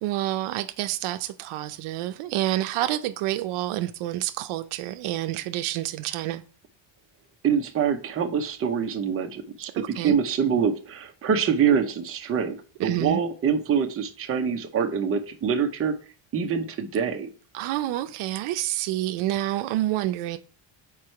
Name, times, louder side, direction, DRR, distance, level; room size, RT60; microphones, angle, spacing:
voice 1, 0.0-6.4 9.7-10.2 12.8-13.2 17.5-20.4, right 14 dB, 75° right, 0.7 m, -28 dB
voice 2, 7.4-16.0 16.3-17.3, right 7 dB, 25° right, 0.8 m, -25 dB
4.7 x 4.5 x 5.8 m
cardioid pair, 170°, 50 cm